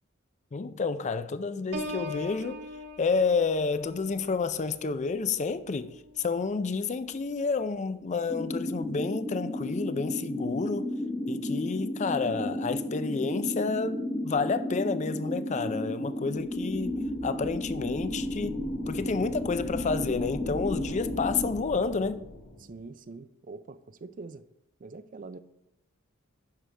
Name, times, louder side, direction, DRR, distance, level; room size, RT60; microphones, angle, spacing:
voice 1, 0.5-2.6 3.0-10.9 11.3-18.6 18.9-22.2, left 4 dB, 35° left, 0.4 m, -30 dB
Piano, 1.7-7.3 7.8-8.2, left 1 dB, 55° right, 1.4 m, -43 dB
sound 1, 8.3-21.5, left 1 dB, 10° left, 0.9 m, -33 dB
sound 2, 16.5-22.8, left 1 dB, 75° left, 1.2 m, -42 dB
voice 2, 22.6-24.4 24.8-25.4, right 3 dB, 40° right, 0.4 m, -44 dB
10.5 x 6.2 x 3.3 m
head